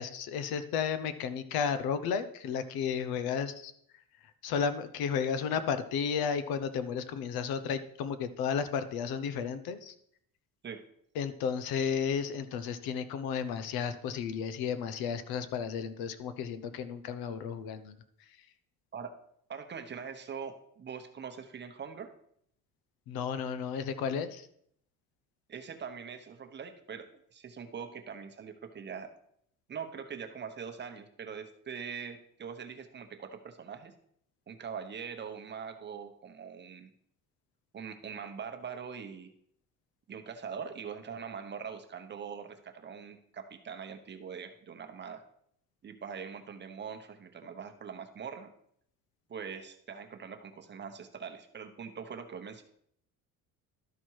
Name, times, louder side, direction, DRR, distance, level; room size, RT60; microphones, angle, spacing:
voice 1, 0.0-3.7 4.4-9.9 11.2-18.0 23.1-24.5, left 7 dB, 85° left, 11 dB, 0.9 m, -33 dB
voice 2, 19.5-22.1 25.5-29.1 29.7-33.9 34.5-36.9 37.7-39.3 40.1-45.2 45.8-48.5 49.3-52.6, right 6 dB, 30° right, 6 dB, 0.9 m, -42 dB
12.0 x 4.4 x 4.7 m, 0.69 s
cardioid pair, 140°, 36 cm